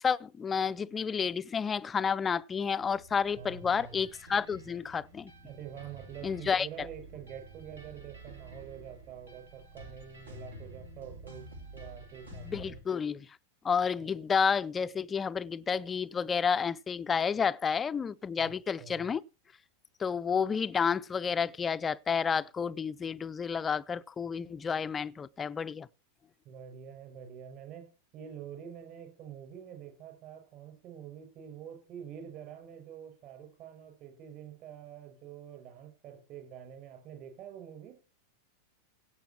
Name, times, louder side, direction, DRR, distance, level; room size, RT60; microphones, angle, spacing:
voice 1, 0.0-5.3 6.2-6.9 12.4-13.3 13.6-19.2 20.0-25.9, left 6 dB, 20° left, 0.5 m, -30 dB
sound 1, 2.8-12.8, right 1 dB, 75° right, 2.7 m, -49 dB
voice 2, 3.4-4.0 5.4-11.5 11.7-12.8 14.0-14.1 18.4-18.5 18.8-19.1 26.4-27.9 28.1-38.0, right 8 dB, 40° right, 5.9 m, -46 dB
17.0 x 7.0 x 4.4 m
figure-of-eight pair, 90°, 0 cm